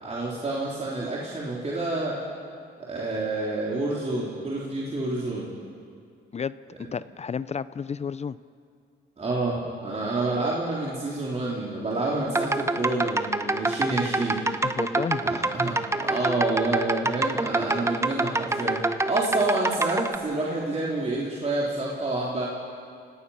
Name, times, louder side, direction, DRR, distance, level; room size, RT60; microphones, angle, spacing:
voice 1, 0.0-2.2 2.8-5.5 9.2-14.4 15.2-22.5, right 2 dB, 35° right, -5 dB, 3.6 m, -28 dB
voice 2, 6.3-8.4 14.6-15.4 16.2-16.3, left 6 dB, 35° left, 16 dB, 0.6 m, -32 dB
sound 1, 12.3-20.2, right 2 dB, 15° right, 1.0 m, -26 dB
29.5 x 18.0 x 5.7 m, 2.3 s
cardioid pair, 90°, 20 cm